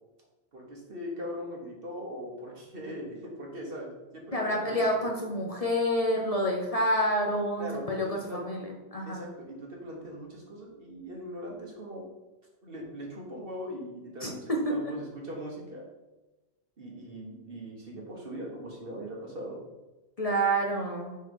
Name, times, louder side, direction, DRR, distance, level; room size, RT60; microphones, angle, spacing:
voice 1, 0.5-5.1 7.6-8.4 9.1-12.1 12.6-15.9 16.8-19.6, equal, 55° right, -1 dB, 1.6 m, -40 dB
voice 2, 4.3-9.2 14.2-14.6 20.2-21.1, equal, 35° left, 0 dB, 0.9 m, -28 dB
6.5 x 3.7 x 5.3 m, 1.1 s
omnidirectional pair, 1.1 m